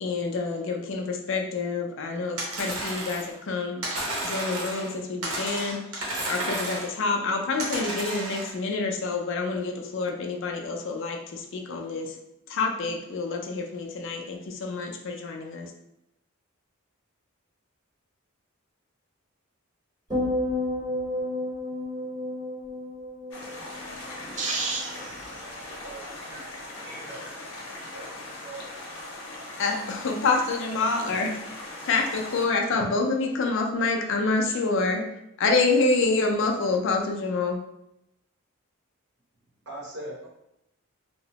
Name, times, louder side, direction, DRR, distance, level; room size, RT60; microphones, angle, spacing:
voice 1, 0.0-3.8 4.2-5.8 6.3-12.2 12.5-15.7 29.6-31.4 31.9-35.1 35.4-37.6, left 3 dB, 60° left, 2 dB, 0.4 m, -27 dB
sound 1, 2.4-3.3 3.8-4.9 5.2-6.9 7.6-8.5, right 1 dB, 90° right, 0.9 m, -32 dB
sound 2, 20.1-24.5 24.8-25.2, left 1 dB, 20° right, 0.9 m, -31 dB
sound 3, 23.3-32.5, left 2 dB, 80° left, 0.8 m, -40 dB
voice 2, 23.4-25.9 26.3-26.9 27.7-27.9, right 3 dB, 35° right, 0 dB, 0.4 m, -36 dB
voice 3, 25.8-26.1 26.8-27.2 27.7-28.1 28.4-28.7 39.7-40.3, right 1 dB, 55° right, -3 dB, 0.8 m, -41 dB
2.8 x 2.0 x 2.8 m, 0.83 s
head